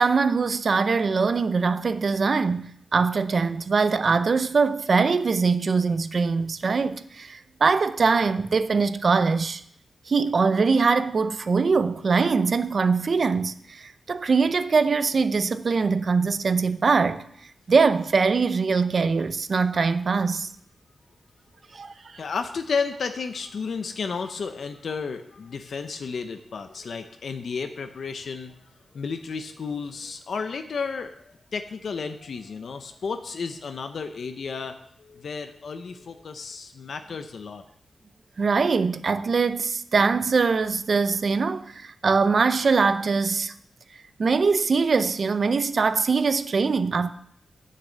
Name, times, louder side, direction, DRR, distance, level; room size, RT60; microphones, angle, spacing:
voice 1, 0.0-9.6 10.1-17.2 17.7-20.5 21.7-21.9 38.4-43.5 44.2-47.1, right 4 dB, 50° right, 0.6 m, -22 dB
voice 2, 22.1-37.6, left 5 dB, 65° left, 0.8 m, -32 dB
10.0 x 6.7 x 7.4 m
wide cardioid pair, 145°, 0 cm